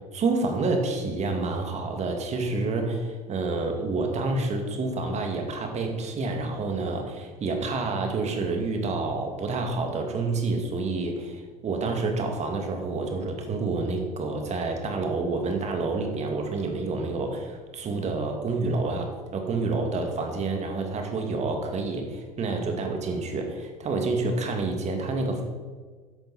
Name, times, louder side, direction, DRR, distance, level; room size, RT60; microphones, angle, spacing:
voice 1, 0.1-25.4, right 3 dB, 35° right, 4 dB, 2.5 m, -28 dB
13.0 x 10.5 x 4.4 m, 1.5 s
figure-of-eight pair, 65°, 20 cm